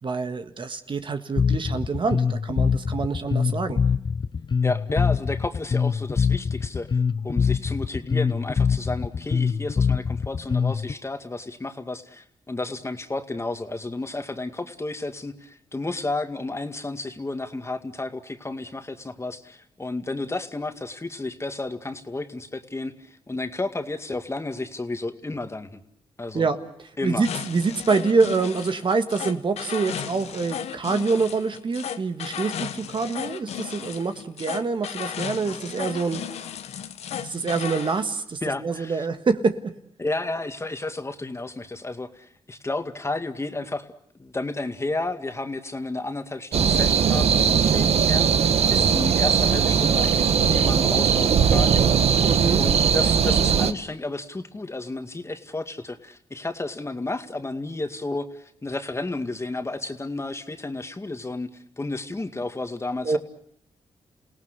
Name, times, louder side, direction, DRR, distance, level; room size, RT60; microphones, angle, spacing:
voice 1, 0.0-3.8 26.3-26.6 27.0-36.2 37.2-39.6 52.2-52.6 63.0-63.2, right 4 dB, 50° right, 8 dB, 1.7 m, -26 dB
Bass guitar, 1.4-10.9, left 6 dB, 45° left, 0.9 m, -24 dB
voice 2, 4.6-6.9 7.2-25.8 26.2-26.5 27.0-27.3 38.4-39.1 40.0-43.9 44.2-48.3 48.7-51.9 52.6-61.5 61.8-63.2, left 2 dB, 25° left, 8 dB, 2.1 m, -32 dB
sound 1, 27.2-38.0, left 9 dB, 85° left, 1.1 m, -35 dB
sound 2, 46.5-53.7, right 7 dB, 75° right, 1.3 m, -19 dB
28.5 x 18.0 x 8.2 m, 0.72 s
cardioid pair, 65°, 11 cm